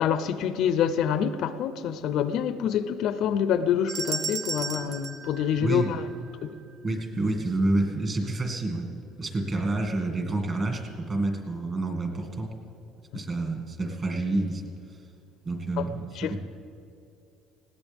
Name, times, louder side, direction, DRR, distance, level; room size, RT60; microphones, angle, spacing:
voice 1, 0.0-6.1 6.4-6.5 13.1-13.2 15.8-15.9 16.2-16.4, left 8 dB, 55° left, 0.5 m, -26 dB
sound 1, 3.9-6.3, right 5 dB, 45° right, 0.9 m, -34 dB
voice 2, 5.6-6.0 6.8-8.9 9.2-12.5 13.1-14.6 15.5-16.4, right 2 dB, 25° right, 2.0 m, -28 dB
20.0 x 17.5 x 3.5 m
cardioid pair, 165°, 0 cm